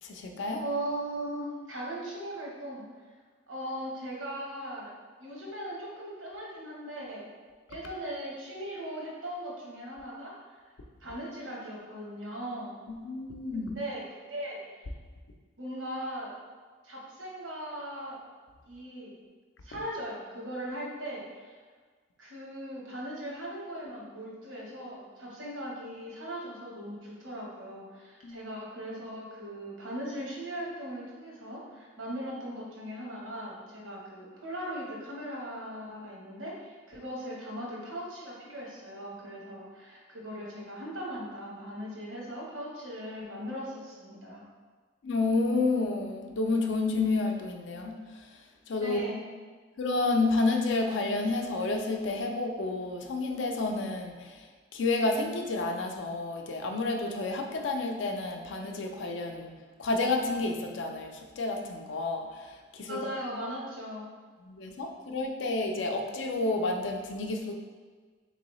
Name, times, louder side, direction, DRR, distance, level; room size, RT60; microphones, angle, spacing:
voice 1, 0.0-0.6 12.9-13.7 28.2-28.5 45.0-48.4 48.7-49.0 49.8-54.5 54.7-59.5 59.8-63.0 64.4-67.5, left 3 dB, 70° left, 3 dB, 0.4 m, -30 dB
voice 2, 0.6-2.9 3.5-4.9 5.2-7.3 7.7-10.6 11.0-12.8 13.8-14.8 15.6-16.3 16.8-18.2 18.7-19.2 19.6-21.6 22.2-44.5 48.8-49.2 62.9-64.1, equal, 80° right, -3 dB, 1.0 m, -39 dB
3.7 x 3.0 x 3.0 m, 1.5 s
head